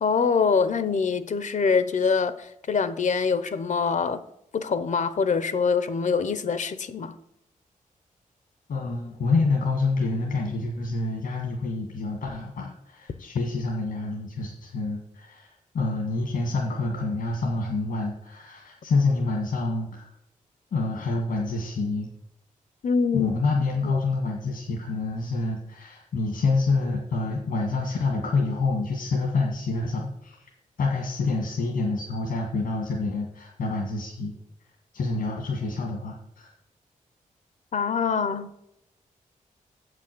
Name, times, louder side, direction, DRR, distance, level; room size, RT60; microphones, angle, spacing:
voice 1, 0.0-4.2 4.5-7.1 22.8-23.3 23.8-24.0 37.7-38.5, left 5 dB, 60° left, 0.8 m, -24 dB
voice 2, 8.7-20.1 20.7-22.1 23.1-30.5 30.8-34.3 34.9-36.5, left 3 dB, 90° left, 1.9 m, -27 dB
7.8 x 6.2 x 7.8 m
cardioid pair, 80°, 14 cm